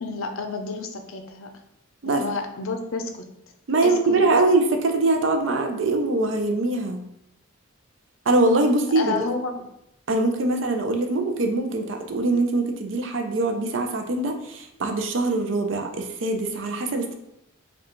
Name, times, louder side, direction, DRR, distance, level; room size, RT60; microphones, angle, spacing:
voice 1, 0.0-1.5 2.0-3.2 3.8-4.2 8.9-9.6, left 4 dB, 70° left, 5 dB, 0.5 m, -30 dB
voice 2, 3.7-7.0 8.3-9.1 10.1-17.1, right 2 dB, 60° right, 5 dB, 0.5 m, -23 dB
4.7 x 2.3 x 3.0 m, 0.80 s
head